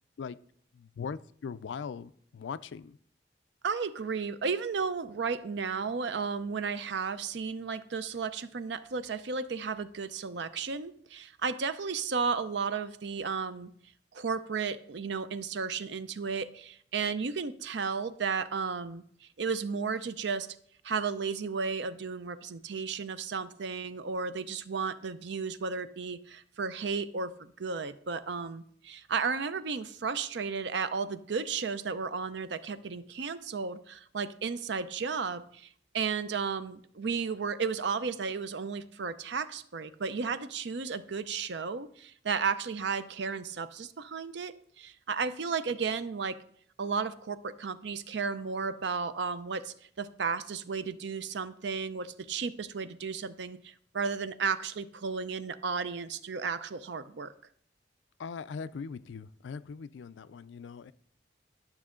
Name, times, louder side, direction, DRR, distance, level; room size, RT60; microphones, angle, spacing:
voice 1, 0.7-3.0 58.2-60.9, left 5 dB, 80° left, 16 dB, 0.4 m, -40 dB
voice 2, 3.6-13.7 14.1-20.5 20.8-35.7 35.9-46.4 46.8-57.3, right 5 dB, 70° right, 13 dB, 0.5 m, -34 dB
11.5 x 6.2 x 3.7 m, 0.62 s
head